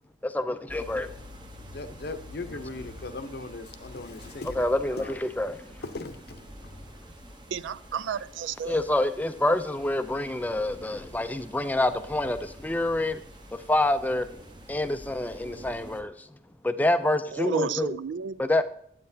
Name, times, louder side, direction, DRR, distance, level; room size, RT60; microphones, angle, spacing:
voice 1, 0.2-1.1 4.5-5.6 8.7-13.2 13.7-14.3 14.7-16.3 16.6-17.9 18.4-18.6, left 1 dB, 10° left, 0.4 m, -27 dB
sound 1, 0.7-16.0, equal, 25° right, 0.9 m, -47 dB
voice 2, 1.7-5.2 5.8-6.7, left 3 dB, 55° left, 0.7 m, -39 dB
voice 3, 7.5-8.8 17.3-18.6, right 7 dB, 80° right, 0.4 m, -32 dB
9.6 x 8.5 x 2.7 m
head